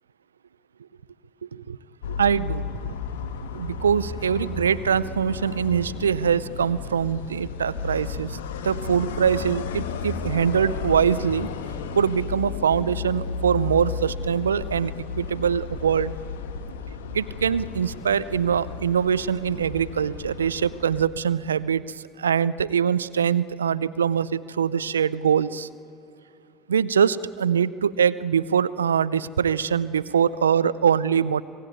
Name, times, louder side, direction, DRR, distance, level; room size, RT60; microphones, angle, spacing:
sound 1, 2.0-21.1, left 5 dB, 80° left, 1.5 m, -33 dB
voice 1, 2.2-2.8 3.5-8.4 8.6-11.5 12.0-16.1 17.1-21.8 22.2-25.7 26.7-31.4, right 7 dB, 90° right, 18 dB, 0.5 m, -23 dB
27.5 x 17.5 x 9.4 m, 2.7 s
hypercardioid pair, 70°, 0 cm